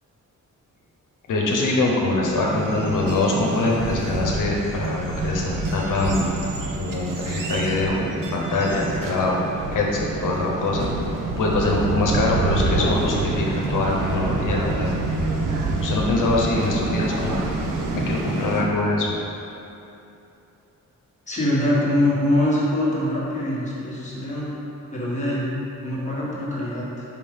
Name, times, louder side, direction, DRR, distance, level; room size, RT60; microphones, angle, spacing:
voice 1, 1.3-6.3 6.8-8.0 8.3-9.4 9.7-10.9 11.4-14.9 15.8-17.4 17.9-19.1, left 2 dB, 80° left, -2 dB, 0.9 m, -23 dB
sound 1, 2.2-18.6, right 3 dB, 85° right, 0.7 m, -27 dB
voice 2, 21.3-24.5 24.9-25.5 25.8-27.0, left 1 dB, 25° left, -8 dB, 1.4 m, -23 dB
5.1 x 5.1 x 3.6 m, 2.9 s
wide cardioid pair, 150°, 31 cm